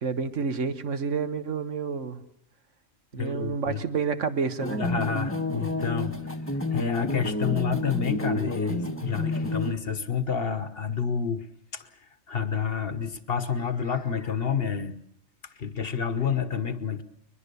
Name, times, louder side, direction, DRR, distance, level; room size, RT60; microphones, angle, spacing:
voice 1, 0.0-2.2 3.1-4.8, right 5 dB, 70° right, 10 dB, 1.6 m, -29 dB
voice 2, 3.1-3.8 4.8-6.1 6.7-11.4 11.7-11.9 12.3-15.0 15.6-17.0, left 7 dB, 50° left, 12 dB, 1.3 m, -29 dB
sound 1, 4.6-9.7, left 1 dB, 10° left, 1.2 m, -30 dB
22.0 x 21.5 x 6.9 m, 0.70 s
omnidirectional pair, 1.3 m